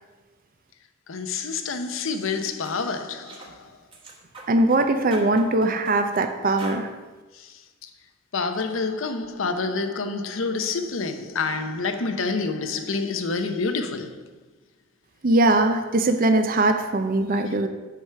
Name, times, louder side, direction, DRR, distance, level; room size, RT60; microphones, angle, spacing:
voice 1, 1.1-3.6 7.4-7.5 7.8-7.9 8.3-14.2 17.3-17.4, left 4 dB, 80° left, 0.8 m, -28 dB
sound 1, 2.1-2.3 2.6-2.8 3.3-3.5 3.9-4.8 5.1-6.2 6.6-6.8, right 2 dB, 25° right, 1.4 m, -42 dB
voice 2, 4.5-6.9 15.2-17.7, right 2 dB, 45° right, 0.6 m, -21 dB
9.1 x 4.9 x 5.7 m
head